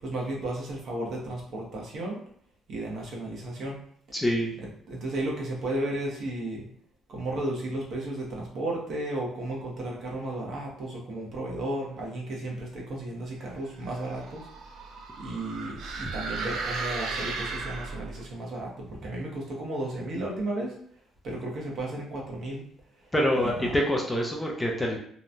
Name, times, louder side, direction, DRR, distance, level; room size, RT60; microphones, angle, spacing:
voice 1, 0.0-2.2 2.7-3.8 4.9-6.6 7.1-14.4 15.2-18.7 19.0-20.7 21.2-22.6 23.4-23.7, right 1 dB, 50° right, -2 dB, 0.9 m, -33 dB
voice 2, 4.1-4.5 23.1-25.0, equal, 10° left, 0 dB, 0.4 m, -26 dB
sound 1, 13.8-18.3, right 4 dB, 75° right, 0.4 m, -35 dB
3.0 x 2.2 x 2.5 m, 0.63 s
cardioid pair, 135°, 0 cm